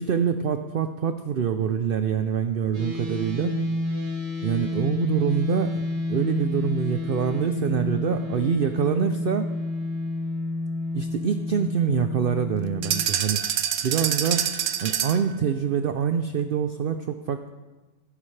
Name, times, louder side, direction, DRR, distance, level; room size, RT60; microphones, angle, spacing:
voice 1, 0.0-3.6 4.4-5.8 6.1-9.5 10.9-13.4 13.8-14.4 14.8-17.5, right 7 dB, 55° right, 8 dB, 0.7 m, -25 dB
sound 1, 2.7-13.0, left 2 dB, 30° right, 3.0 m, -29 dB
sound 2, 12.8-15.3, right 9 dB, 80° right, 1.1 m, -26 dB
15.5 x 13.5 x 3.3 m, 1.2 s
omnidirectional pair, 1.3 m